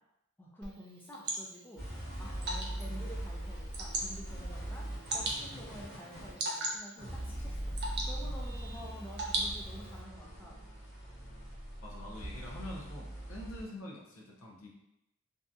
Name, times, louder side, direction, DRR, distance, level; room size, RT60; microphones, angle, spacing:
voice 1, 0.4-1.9 2.2-4.9 5.1-10.6, equal, 10° left, -3 dB, 0.4 m, -49 dB
Water / Drip, 0.6-10.0, right 2 dB, 50° right, 0.5 m, -40 dB
sound 1, 1.8-13.6, right 1 dB, 50° left, 1.2 m, -41 dB
voice 2, 11.8-14.7, left 1 dB, 75° left, -2 dB, 0.6 m, -45 dB
2.7 x 2.6 x 2.2 m, 0.86 s
head